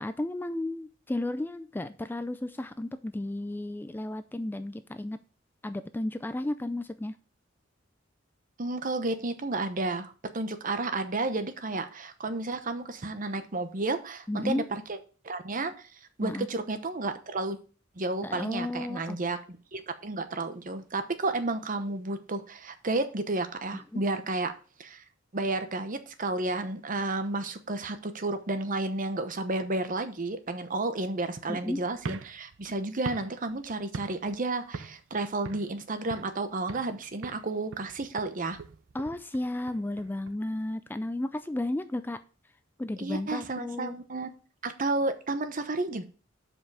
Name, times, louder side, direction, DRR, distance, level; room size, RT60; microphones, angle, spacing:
voice 1, 0.0-5.2 5.6-7.2 14.3-14.7 16.2-16.5 18.2-19.2 23.9-24.0 31.5-31.8 38.9-42.2 42.8-44.0, left 1 dB, 10° left, 11 dB, 0.3 m, -33 dB
voice 2, 8.6-15.0 15.2-17.6 18.0-19.4 19.7-24.5 24.8-25.0 25.3-38.6 43.0-44.3 44.6-46.0, right 2 dB, 45° right, 9 dB, 0.9 m, -32 dB
sound 1, 31.9-34.4 34.7-35.1 35.4-36.4 36.7-37.0 37.2-40.3, right 4 dB, 75° right, 0.5 m, -42 dB
7.3 x 5.4 x 4.7 m, 0.37 s
head